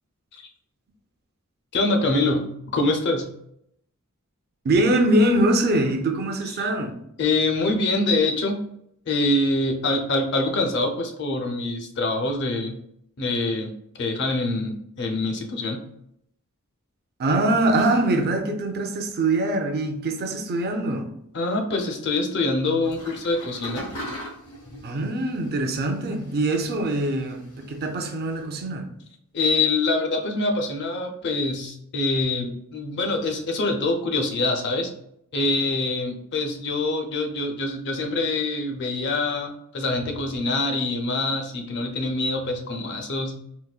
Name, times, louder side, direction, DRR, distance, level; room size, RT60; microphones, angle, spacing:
voice 1, 1.7-3.3 6.6-6.7 7.2-8.6 9.1-12.8 13.2-15.9 21.3-23.9 29.3-34.9 35.3-43.4, left 2 dB, 55° left, 0.5 m, -25 dB
voice 2, 4.6-7.0 17.2-21.1 24.8-28.9, right 1 dB, 45° right, 0.4 m, -23 dB
sound 1, 22.8-28.4, equal, 75° left, 1.0 m, -41 dB
3.9 x 2.1 x 2.3 m
head